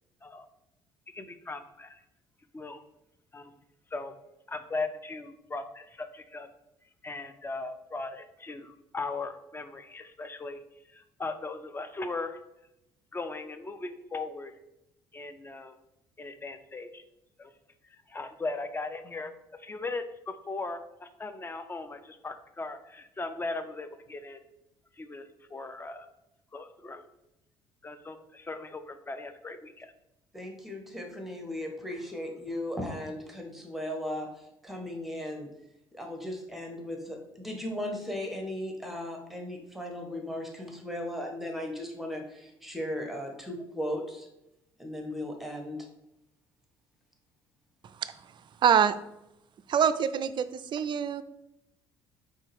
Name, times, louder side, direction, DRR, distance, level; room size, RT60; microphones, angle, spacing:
voice 1, 1.1-2.0 2.5-2.8 3.3-3.5 3.9-4.1 4.5-6.5 7.0-12.4 13.1-14.5 15.1-15.8 16.2-17.0 17.4-17.5 17.8-24.4 24.9-26.1 26.5-27.0 27.8-29.9, left 3 dB, 20° left, 9 dB, 0.5 m, -38 dB
voice 2, 30.3-34.3 34.6-35.5 35.9-44.3 44.8-45.8, left 1 dB, ahead, 2 dB, 1.1 m, -36 dB
voice 3, 48.6-49.0 49.7-51.2, right 8 dB, 40° right, 13 dB, 0.3 m, -24 dB
4.5 x 3.2 x 3.4 m, 0.86 s
hypercardioid pair, 55°, 12 cm